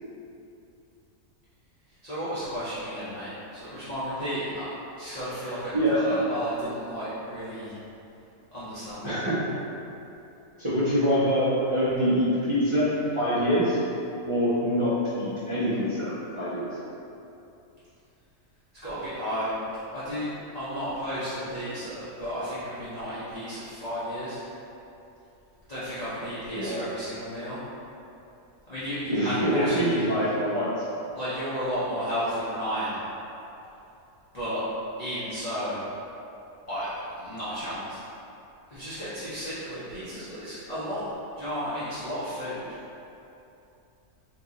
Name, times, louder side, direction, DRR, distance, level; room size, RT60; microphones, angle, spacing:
voice 1, 2.0-4.7 5.0-7.7 8.5-9.3 18.8-19.5 19.9-24.4 25.7-27.6 28.7-30.3 31.1-33.0 34.3-34.6 35.0-35.8 36.7-38.0 38.7-41.1 41.4-42.7, equal, 40° left, -13 dB, 0.6 m, -33 dB
voice 2, 5.7-6.2 9.0-9.4 10.6-13.8 14.3-16.8 26.5-26.8 29.1-30.8, equal, 35° right, -12 dB, 0.5 m, -25 dB
2.9 x 2.8 x 3.7 m, 2.8 s
omnidirectional pair, 1.5 m